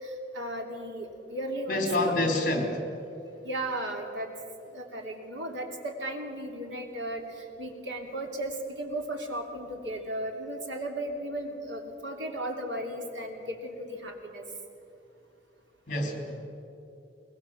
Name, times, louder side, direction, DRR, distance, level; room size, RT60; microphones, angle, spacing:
voice 1, 0.0-2.4 3.4-4.3 4.7-7.2 7.6-14.4, right 1 dB, 90° right, 2 dB, 3.0 m, -35 dB
voice 2, 1.7-2.8 15.9-16.5, left 1 dB, 45° left, 4 dB, 3.4 m, -27 dB
21.5 x 21.0 x 7.2 m, 2.8 s
head